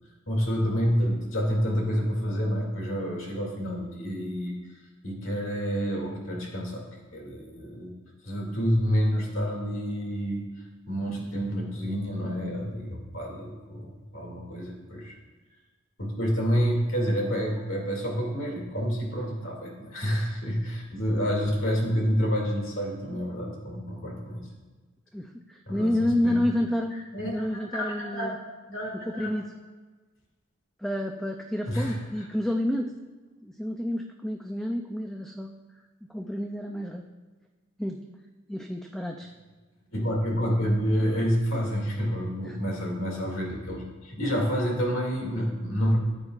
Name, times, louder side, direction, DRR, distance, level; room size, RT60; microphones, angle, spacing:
voice 1, 0.3-4.6 5.0-6.8 7.1-7.9 8.2-15.2 16.0-24.5 25.7-25.9 26.2-26.7 27.1-28.3 28.7-29.3 31.7-32.3 39.9-46.0, equal, 75° left, -1 dB, 2.3 m, -28 dB
voice 2, 25.1-27.0 27.2-28.3 28.9-29.4 30.8-32.9 33.4-35.5 36.1-37.1 37.8-38.0 38.5-39.3 42.4-42.6, left 1 dB, ahead, 3 dB, 0.4 m, -29 dB
14.0 x 8.9 x 2.4 m, 1.3 s
head